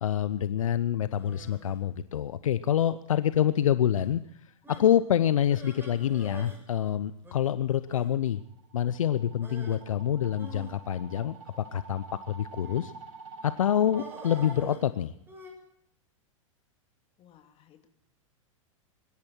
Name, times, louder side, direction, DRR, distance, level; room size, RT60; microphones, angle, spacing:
voice 1, 0.0-4.2 4.7-8.4 8.7-12.9 13.4-15.1, left 10 dB, 75° left, 14 dB, 0.8 m, -27 dB
sound 1, 1.1-1.8 2.6-2.9 3.3-3.4 4.0-4.1 4.6-4.9 5.4-6.6 6.9-7.0 7.2-7.4 7.9-8.1 9.4-9.8 10.4-11.7 12.5-13.0 13.9-15.5, right 2 dB, 10° right, 7.0 m, -46 dB
voice 2, 7.8-8.4 17.2-17.9, left 10 dB, 35° left, 4 dB, 3.1 m, -60 dB
sound 2, 8.4-14.6, right 4 dB, 70° right, 7.3 m, -46 dB
23.5 x 13.0 x 4.6 m, 0.76 s
hypercardioid pair, 105°, 17 cm